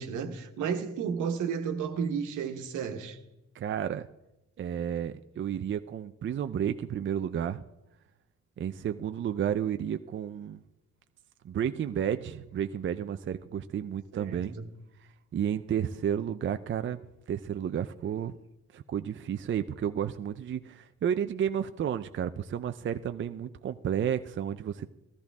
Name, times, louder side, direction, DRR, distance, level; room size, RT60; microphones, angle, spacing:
voice 1, 0.0-3.2 14.1-14.7, right 6 dB, 80° right, 1.3 m, -33 dB
voice 2, 3.5-4.1 4.6-7.7 8.6-10.6 11.4-14.6 15.3-17.0 17.3-18.4 18.7-24.9, right 9 dB, 40° right, 0.5 m, -32 dB
13.5 x 13.5 x 3.6 m
cardioid pair, 90°, 30 cm